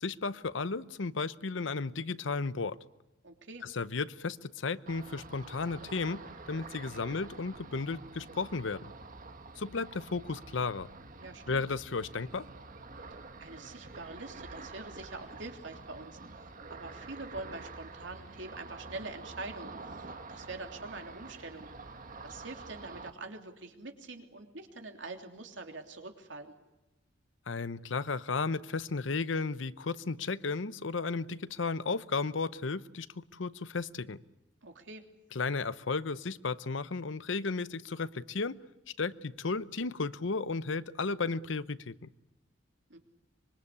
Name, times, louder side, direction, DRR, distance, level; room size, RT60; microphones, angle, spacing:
voice 1, 0.0-2.8 3.6-8.9 9.6-10.9 11.5-12.5 27.5-34.2 35.3-38.6 39.0-41.9, left 4 dB, 75° left, 16 dB, 0.8 m, -34 dB
voice 2, 3.2-3.6 11.2-11.6 13.4-16.2 16.7-21.7 22.2-26.5 34.6-35.0 42.9-43.0, right 3 dB, 70° right, 4 dB, 3.2 m, -44 dB
Ocean, 4.9-23.1, right 3 dB, 45° right, 1.7 m, -48 dB
25.0 x 23.0 x 8.5 m, 0.99 s
head